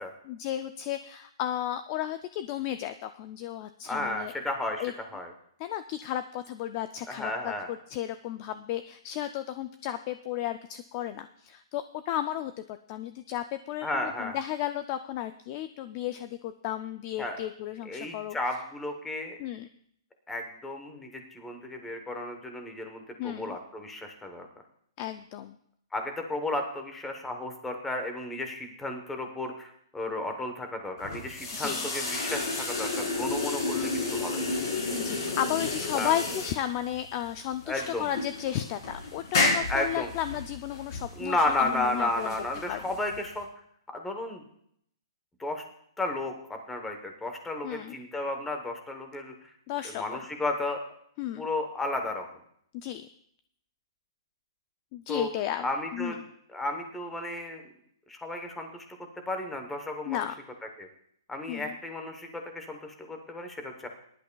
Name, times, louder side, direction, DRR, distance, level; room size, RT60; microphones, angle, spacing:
voice 1, 0.3-4.3 4.8-4.9 5.6-18.4 19.4-19.7 23.2-23.6 25.0-25.6 31.5-31.8 35.0-42.3 42.7-42.8 47.6-47.9 49.7-50.0 51.2-51.5 52.7-53.1 54.9-55.7 55.9-56.2 60.1-60.3 61.5-61.8, left 12 dB, 20° left, 10 dB, 0.3 m, -34 dB
voice 2, 3.9-4.8 5.1-5.3 7.1-7.7 13.8-14.4 17.2-17.4 17.8-19.4 20.3-24.5 25.9-34.4 35.9-36.1 37.7-38.1 39.7-40.1 41.2-43.5 43.9-44.4 45.4-45.6 46.0-49.3 49.9-50.8 51.4-52.3 55.1-55.3 55.6-56.2 56.5-57.7 58.1-58.9 59.3-60.3 60.8-60.9 61.3-63.9, left 2 dB, 5° left, 4 dB, 0.9 m, -33 dB
sound 1, 31.0-43.4, left 3 dB, 50° left, 3.9 m, -32 dB
20.5 x 11.0 x 2.3 m, 0.68 s
hypercardioid pair, 175°, 3 cm